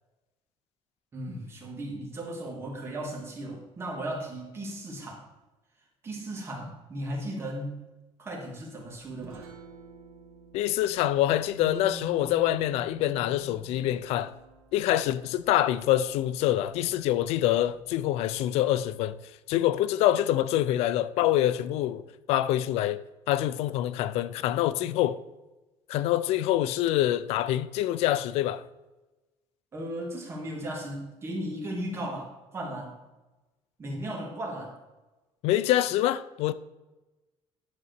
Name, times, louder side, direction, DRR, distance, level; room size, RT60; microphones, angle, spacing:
voice 1, 1.1-5.2 6.0-7.8 8.2-9.5 29.7-33.0 33.8-34.7, right 1 dB, 25° right, 2.3 m, -36 dB
Guitar, 8.8-18.5, right 5 dB, 60° right, 1.9 m, -49 dB
voice 2, 10.5-14.3 14.7-19.2 19.5-22.0 22.3-23.0 23.3-25.2 25.9-28.6 35.4-36.5, left 13 dB, 70° left, 0.5 m, -25 dB
10.5 x 4.1 x 6.7 m
cardioid pair, 165°, 11 cm